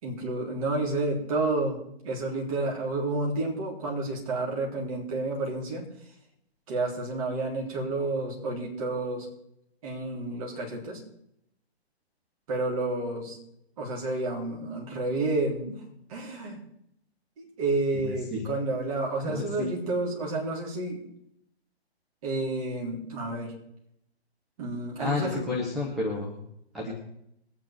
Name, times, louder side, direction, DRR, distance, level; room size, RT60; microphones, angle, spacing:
voice 1, 0.0-5.8 6.7-9.3 9.8-11.0 12.5-13.4 13.8-15.8 16.1-16.6 17.4-21.0 22.2-23.5 24.6-25.5, right 2 dB, 30° right, -2 dB, 3.7 m, -30 dB
voice 2, 17.9-18.4 19.2-19.7 25.0-26.4 26.7-27.0, left 2 dB, ahead, -6 dB, 0.5 m, -31 dB
21.5 x 8.8 x 4.5 m, 0.76 s
figure-of-eight pair, 135°, 33 cm